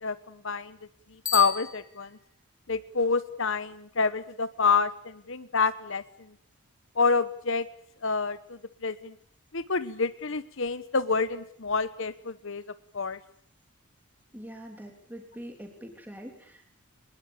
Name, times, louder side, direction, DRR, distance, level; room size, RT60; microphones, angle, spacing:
voice 1, 0.0-0.8 1.3-2.1 2.7-6.0 7.0-7.6 8.0-9.1 9.5-12.6 12.9-13.2, left 4 dB, 60° left, 14 dB, 1.1 m, -27 dB
Bicycle bell, 1.2-2.5, left 7 dB, 15° left, 2.6 m, -34 dB
voice 2, 14.3-16.8, equal, 10° right, 3 dB, 3.2 m, -44 dB
23.5 x 21.5 x 8.6 m, 0.64 s
head